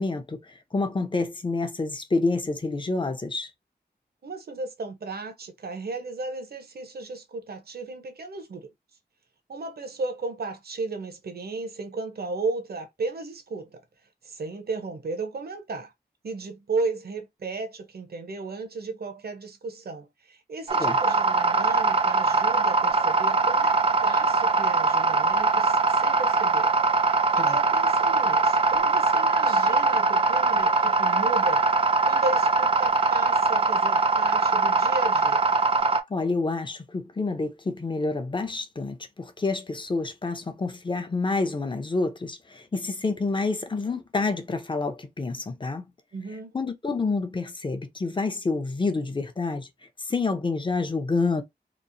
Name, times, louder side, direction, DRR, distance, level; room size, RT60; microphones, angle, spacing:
voice 1, 0.0-3.5 20.8-21.0 27.4-27.5 36.1-45.8 46.5-49.7 50.1-51.4, left 3 dB, 30° left, 0.6 m, -28 dB
voice 2, 4.2-8.7 9.5-13.8 14.2-15.9 16.2-26.8 27.3-31.7 32.0-35.5 46.1-46.5, right 3 dB, 65° right, 0.7 m, -34 dB
sound 1, 20.7-36.0, right 3 dB, 35° right, 0.4 m, -22 dB
2.9 x 2.0 x 2.6 m
cardioid pair, 60°, 17 cm